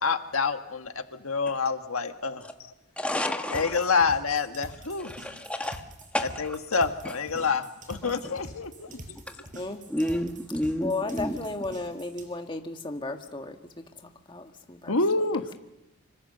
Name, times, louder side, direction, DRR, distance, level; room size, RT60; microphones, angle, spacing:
voice 1, 0.0-2.4 3.5-5.1 6.4-8.9 14.9-15.6, left 4 dB, 85° left, 7 dB, 1.6 m, -27 dB
voice 2, 3.0-3.9 5.0-5.8 6.1-6.6 7.4-7.5 8.0-8.3 9.3-9.4 9.9-11.4, left 1 dB, 5° left, 4 dB, 1.3 m, -31 dB
sound 1, 3.5-12.3, right 1 dB, 40° right, 4.7 m, -45 dB
voice 3, 9.5-10.2 10.8-13.6 14.0-15.0, left 2 dB, 20° left, 4 dB, 1.7 m, -34 dB
26.0 x 24.5 x 6.8 m, 0.96 s
head